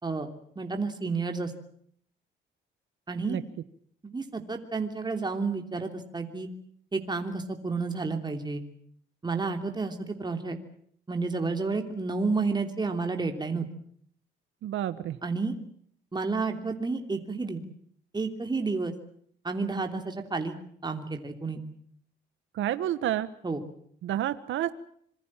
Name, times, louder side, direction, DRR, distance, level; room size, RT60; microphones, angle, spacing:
voice 1, 0.6-1.5 3.1-3.4 4.0-6.5 6.9-8.6 9.2-10.6 11.1-13.7 15.2-15.6 16.1-17.6 18.1-18.9 19.4-20.6 20.8-21.6 23.4-23.6, right 4 dB, 20° right, 4 dB, 3.1 m, -30 dB
voice 2, 14.6-15.2 22.5-23.3 24.0-24.7, right 12 dB, 80° right, 13 dB, 1.3 m, -29 dB
26.5 x 23.0 x 7.4 m, 0.64 s
cardioid pair, 90°, 20 cm